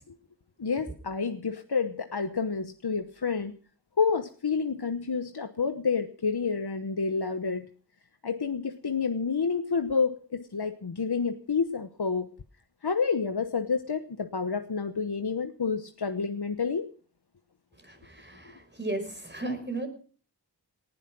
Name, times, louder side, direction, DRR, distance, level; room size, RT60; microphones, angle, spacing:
voice 1, 0.6-3.5 4.0-7.7 8.2-12.3 12.8-16.9, left 5 dB, 65° left, 8 dB, 1.0 m, -29 dB
voice 2, 17.8-19.9, right 2 dB, 25° right, 4 dB, 5.7 m, -35 dB
19.0 x 11.5 x 6.1 m, 0.43 s
wide cardioid pair, 50°, 41 cm